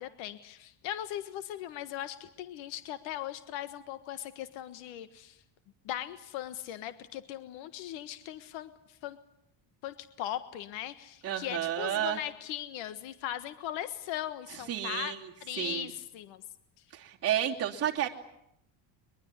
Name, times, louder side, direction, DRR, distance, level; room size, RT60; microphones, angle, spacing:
voice 1, 0.0-5.4 5.8-9.2 9.8-15.1 15.4-16.4, left 12 dB, 80° left, 11 dB, 1.6 m, -39 dB
voice 2, 11.2-12.2 14.7-15.2 15.6-15.9 16.9-18.1, right 11 dB, 30° right, -2 dB, 2.8 m, -31 dB
23.0 x 22.5 x 9.8 m, 0.76 s
cardioid pair, 160°, 45 cm